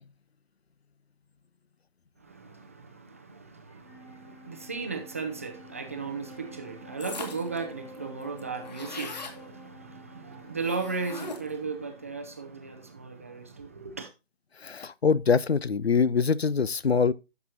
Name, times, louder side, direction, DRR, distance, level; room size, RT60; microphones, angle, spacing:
voice 1, 2.2-14.1, right 4 dB, 15° right, 0.6 m, -36 dB
Wind instrument woodwind instrument, 3.7-13.2, left 2 dB, 15° left, 2.0 m, -51 dB
sound 1, 7.0-7.6 7.9-8.0 8.2-9.4 10.6-11.6, left 3 dB, 45° left, 2.2 m, -40 dB
voice 2, 14.6-17.1, left 5 dB, 85° left, 0.8 m, -24 dB
12.5 x 6.2 x 2.8 m
figure-of-eight pair, 160°, 31 cm